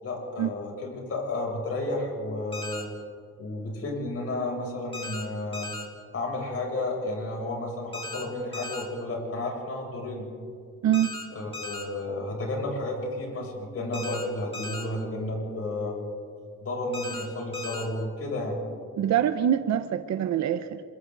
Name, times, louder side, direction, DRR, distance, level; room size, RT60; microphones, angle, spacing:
voice 1, 0.0-2.9 3.4-5.7 6.1-10.3 11.3-16.0 16.6-18.6, left 2 dB, 50° left, -1 dB, 7.5 m, -32 dB
sound 1, 2.5-2.8 4.9-5.2 5.5-5.8 7.9-8.2 8.5-8.8 10.9-11.2 11.5-11.8 13.9-14.2 14.5-14.8 16.9-17.2 17.5-17.8, left 2 dB, 20° left, 4.6 m, -37 dB
voice 2, 19.0-20.8, right 10 dB, 65° right, 9 dB, 0.9 m, -24 dB
27.0 x 24.0 x 4.0 m, 2.1 s
cardioid pair, 90°, 30 cm